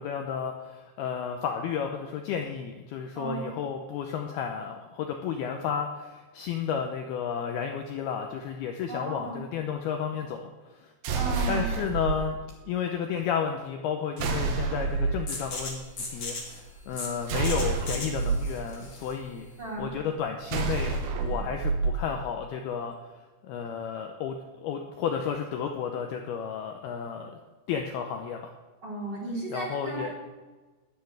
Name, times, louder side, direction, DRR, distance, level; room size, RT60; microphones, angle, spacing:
voice 1, 0.0-10.5 10.8-10.9 11.5-12.4 12.6-19.5 19.8-21.0 21.2-23.0 23.4-27.3 27.7-28.5 29.5-30.1, left 7 dB, 75° left, 3 dB, 2.4 m, -32 dB
voice 2, 3.2-3.6 8.9-9.4 11.1-11.7 19.6-19.9 28.8-30.3, right 2 dB, 25° right, -4 dB, 3.4 m, -35 dB
sound 1, 11.0-12.2 14.2-15.2 17.3-18.4 20.5-22.0, right 4 dB, 65° right, 2.9 m, -28 dB
sound 2, 15.3-20.8, left 2 dB, 35° left, 3.0 m, -39 dB
13.0 x 6.8 x 9.3 m, 1.3 s
omnidirectional pair, 5.3 m